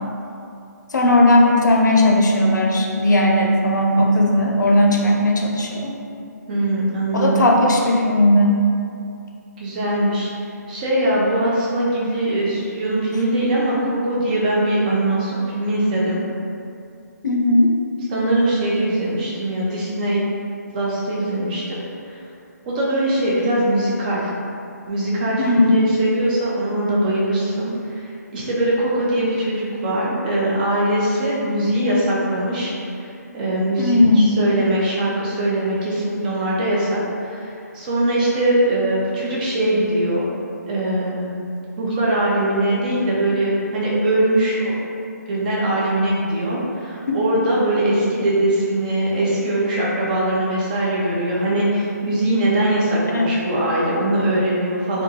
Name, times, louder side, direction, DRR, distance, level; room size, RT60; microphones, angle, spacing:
voice 1, 0.9-5.9 7.1-8.6 17.2-17.7 25.4-25.7 33.8-34.3 53.1-53.3, left 1 dB, 85° left, 0 dB, 0.6 m, -16 dB
voice 2, 6.5-7.5 9.6-10.3 10.7-16.2 18.1-20.2 20.7-21.7 22.0-22.2 22.6-24.2 24.9-40.3 40.7-41.3 41.8-44.7 45.3-55.0, right 1 dB, 30° right, -6 dB, 0.7 m, -21 dB
3.5 x 2.6 x 2.8 m, 2.5 s
hypercardioid pair, 155°, 10 cm